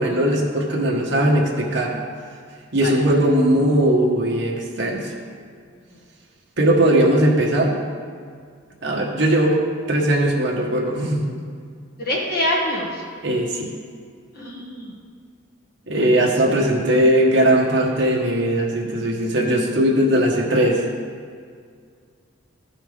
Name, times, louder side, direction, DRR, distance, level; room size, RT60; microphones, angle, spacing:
voice 1, 0.0-2.0 2.7-5.1 6.6-7.7 8.8-9.6 9.9-11.4 13.2-13.7 15.9-20.8, right 1 dB, 60° right, -1 dB, 1.3 m, -19 dB
voice 2, 12.0-13.0 14.4-14.9 15.9-16.2, left 1 dB, 45° left, -4 dB, 1.8 m, -25 dB
13.5 x 5.7 x 3.5 m, 2.1 s
head